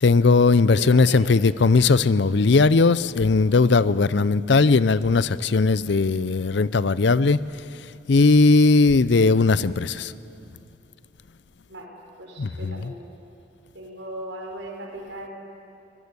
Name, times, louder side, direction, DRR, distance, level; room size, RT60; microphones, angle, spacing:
voice 1, 0.0-7.4 8.1-10.1 12.4-12.9, left 3 dB, 65° left, 18 dB, 0.5 m, -18 dB
voice 2, 0.7-1.2 11.7-11.9 12.2-13.0 13.7-15.3, right 1 dB, 70° right, 0 dB, 5.2 m, -38 dB
23.5 x 19.5 x 8.2 m, 2.9 s
head